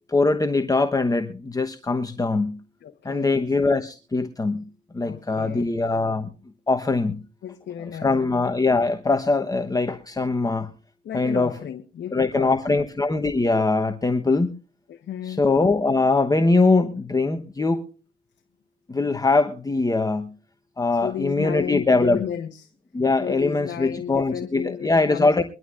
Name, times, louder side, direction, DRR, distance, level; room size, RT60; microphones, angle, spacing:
voice 1, 0.1-2.6 3.0-4.6 4.9-6.3 6.7-7.2 8.0-10.7 11.1-11.6 12.1-14.6 15.3-17.8 18.9-20.3 20.8-22.2 22.9-25.4, left 3 dB, 20° left, 1.0 m, -22 dB
voice 2, 2.8-3.5 5.0-5.7 7.4-8.2 11.0-12.8 14.9-15.4 21.0-22.7 23.2-25.4, left 9 dB, 60° left, 1.1 m, -33 dB
23.0 x 12.0 x 2.5 m
cardioid pair, 90°, 20 cm